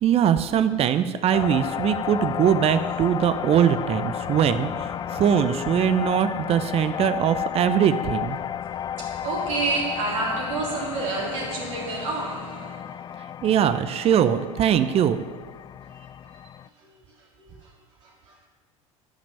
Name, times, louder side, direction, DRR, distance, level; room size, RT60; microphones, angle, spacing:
voice 1, 0.0-8.4 13.4-15.2, right 9 dB, 35° right, 11 dB, 0.7 m, -21 dB
sound 1, 1.3-16.7, left 9 dB, 25° left, 0.3 m, -32 dB
voice 2, 8.7-13.0 15.7-16.4 16.7-17.7 18.0-18.4, right 3 dB, 65° right, -4 dB, 3.7 m, -31 dB
11.5 x 6.0 x 9.2 m, 1.4 s
figure-of-eight pair, 70°, 17 cm